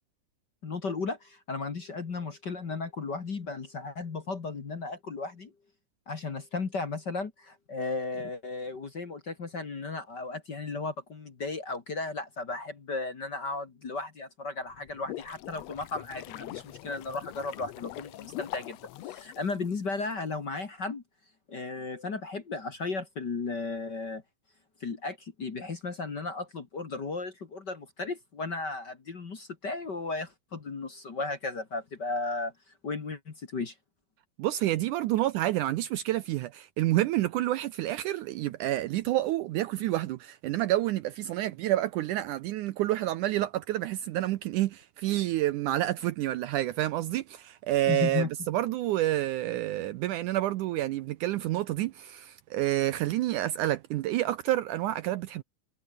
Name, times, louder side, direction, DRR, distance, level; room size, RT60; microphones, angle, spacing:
voice 1, 0.6-5.5 6.1-18.8 19.0-21.0 21.5-24.2 24.8-32.5 32.8-33.7 47.9-48.3, left 3 dB, 35° left, 2.0 m, -35 dB
sound 1, 14.7-20.1, left 14 dB, 80° left, 1.5 m, -42 dB
voice 2, 34.4-55.4, right 14 dB, 75° right, 2.0 m, -29 dB
omnidirectional pair, 4.1 m